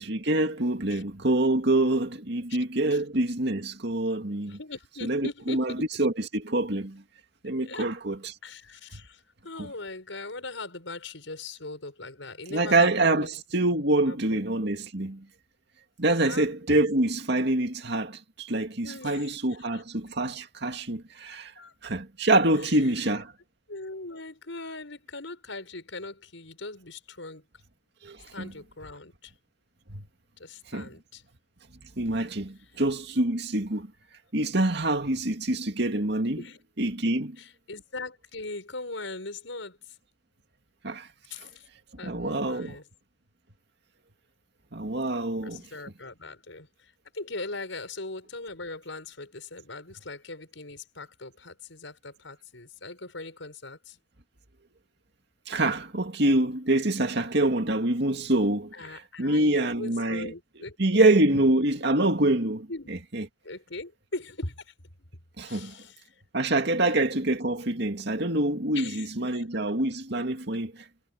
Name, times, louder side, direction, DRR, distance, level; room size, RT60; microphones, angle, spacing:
voice 1, 0.0-4.6 5.1-5.7 6.0-7.0 7.4-8.2 9.6-9.7 12.5-15.2 16.0-21.5 21.8-23.3 28.0-28.5 29.9-30.0 30.7-30.9 32.0-33.9 34.3-36.4 36.8-37.4 40.8-41.1 41.4-41.5 42.0-42.8 44.7-45.6 55.5-58.7 59.2-60.3 60.8-62.7 63.1-63.2 65.4-65.7 66.3-70.7, right 2 dB, 60° right, 2.4 m, -25 dB
voice 2, 4.4-5.8 7.6-7.9 8.4-13.4 13.7-13.8 14.1-14.4 16.2-16.8 18.8-19.4 19.7-19.8 21.6-21.7 22.6-23.1 23.7-27.4 28.3-29.3 30.4-31.2 34.9-35.0 36.4-36.6 37.4-40.0 41.3-41.7 42.0-42.8 45.4-54.0 58.7-61.1 61.3-61.4 62.7-62.9 63.4-64.7 65.5-66.2 66.8-67.0 68.7-69.4, left 3 dB, 80° left, 5.9 m, -40 dB
head